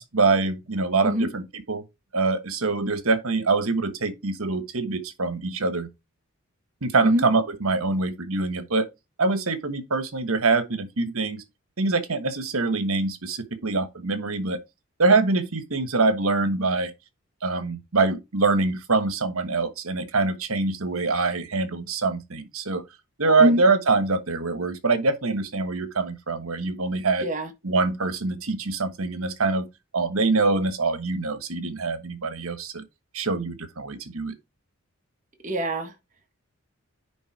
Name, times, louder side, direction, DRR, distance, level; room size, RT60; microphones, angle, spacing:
voice 1, 0.0-1.8 2.1-5.9 6.8-8.9 9.2-11.4 11.8-14.6 15.0-16.9 17.4-22.8 23.2-27.3 27.6-29.7 29.9-32.8 33.1-34.3, right 3 dB, 75° right, 1.3 m, -24 dB
voice 2, 35.4-35.9, equal, 35° right, 1.6 m, -23 dB
10.0 x 3.6 x 4.8 m
head